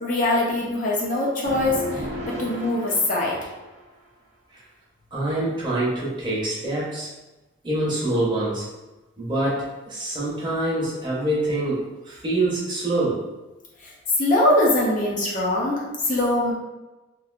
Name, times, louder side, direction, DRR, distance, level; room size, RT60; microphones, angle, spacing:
voice 1, 0.0-3.4 14.2-16.5, left 1 dB, 40° left, -4 dB, 0.5 m, -22 dB
sound 1, 1.4-3.8, equal, 65° right, 0.5 m, -33 dB
voice 2, 5.1-7.1 7.6-8.7 9.2-13.2, right 1 dB, 25° right, -7 dB, 0.8 m, -25 dB
3.1 x 2.5 x 2.4 m, 1.1 s
head